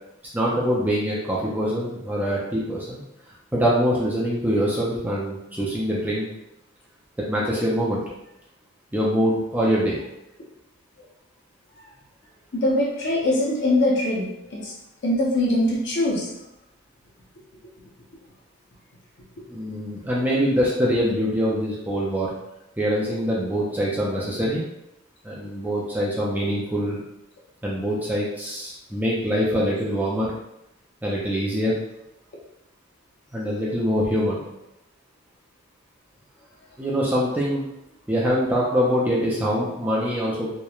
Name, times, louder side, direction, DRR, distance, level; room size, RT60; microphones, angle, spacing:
voice 1, 0.3-3.0 3.5-6.3 7.2-8.0 8.9-10.0 19.5-22.3 22.8-24.6 25.2-27.0 27.6-30.3 31.0-31.8 33.3-34.4 36.8-37.6 38.1-40.5, equal, 10° right, -5 dB, 0.3 m, -24 dB
voice 2, 12.5-14.2 14.5-14.7 15.0-16.3, left 1 dB, 55° left, -3 dB, 0.6 m, -22 dB
2.9 x 2.1 x 2.3 m, 0.85 s
head